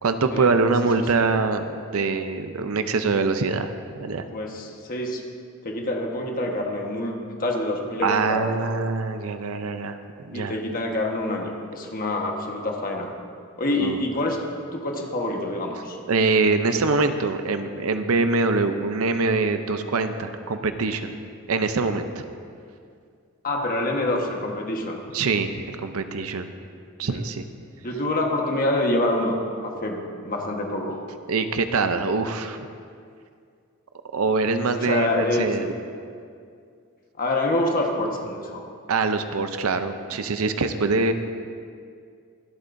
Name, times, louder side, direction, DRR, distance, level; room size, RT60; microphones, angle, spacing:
voice 1, 0.0-1.7 1.9-4.2 8.0-10.0 10.2-10.6 13.8-14.0 16.1-21.1 21.5-22.2 25.1-26.5 27.0-27.4 31.3-32.6 34.1-35.7 38.9-41.1, right 3 dB, 70° right, 9 dB, 0.6 m, -24 dB
voice 2, 4.3-5.2 5.6-8.7 10.3-13.1 13.6-14.4 14.7-16.0 23.4-25.0 27.0-27.2 27.8-31.0 34.7-35.7 37.2-38.6, left 1 dB, 40° left, 1 dB, 1.3 m, -26 dB
23.0 x 8.3 x 2.6 m, 2.3 s
head